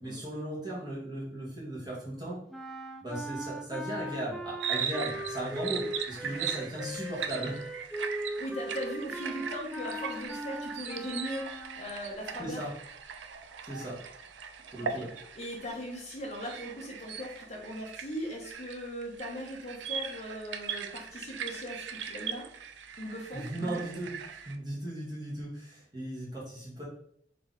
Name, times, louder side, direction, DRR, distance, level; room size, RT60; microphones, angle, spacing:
voice 1, 0.0-2.4 3.0-7.6 12.4-12.7 13.6-14.0 14.7-15.1 23.3-26.8, right 1 dB, 25° right, -6 dB, 1.8 m, -37 dB
sound 1, 2.5-12.0, equal, ahead, 0.3 m, -39 dB
sound 2, 4.6-24.5, right 7 dB, 75° right, 0.4 m, -39 dB
voice 2, 8.0-11.5 11.8-12.6 14.8-15.1 15.3-22.5 23.0-23.8, equal, 35° left, -3 dB, 1.3 m, -39 dB
4.0 x 3.6 x 3.7 m, 0.65 s
head